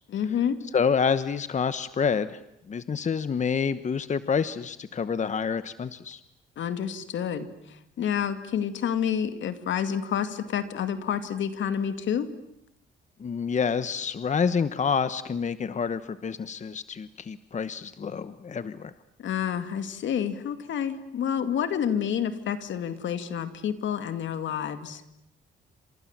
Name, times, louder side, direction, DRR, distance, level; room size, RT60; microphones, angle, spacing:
voice 1, 0.1-0.6 6.6-12.3 19.2-25.0, left 8 dB, 70° left, 10 dB, 2.4 m, -29 dB
voice 2, 0.7-2.4 2.7-6.2 13.2-18.9, left 6 dB, 35° left, 13 dB, 1.1 m, -28 dB
29.0 x 26.5 x 7.4 m, 0.83 s
cardioid pair, 90°, 20 cm